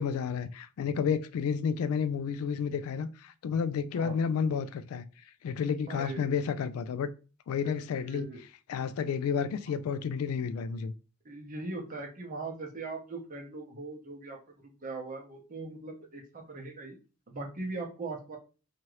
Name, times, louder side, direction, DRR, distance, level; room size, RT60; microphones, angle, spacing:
voice 1, 0.0-5.1 5.4-7.1 7.5-8.3 8.7-10.9, left 6 dB, 85° left, 0.3 m, -31 dB
voice 2, 5.9-6.3 8.0-8.4 11.2-17.0 17.3-18.4, right 3 dB, 40° right, 0.8 m, -40 dB
2.8 x 2.4 x 3.0 m
head